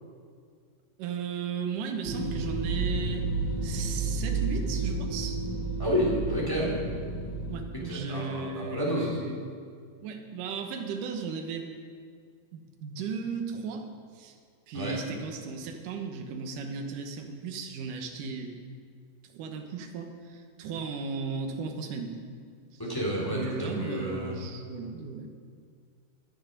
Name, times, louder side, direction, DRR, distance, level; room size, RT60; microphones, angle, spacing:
voice 1, 1.0-3.3 3.6-5.4 7.5-9.4 10.0-11.7 12.5-13.9 14.1-14.4 14.7-18.6 19.2-22.2 22.7-22.8 23.3-25.3, right 5 dB, 70° right, 4 dB, 2.6 m, -36 dB
sound 1, 2.0-7.7, right 3 dB, 35° right, 2.3 m, -31 dB
voice 2, 5.8-6.8 7.7-9.2 14.7-15.0 22.8-24.4, equal, 5° left, -5 dB, 2.4 m, -30 dB
21.0 x 7.0 x 5.2 m, 2.1 s
omnidirectional pair, 4.1 m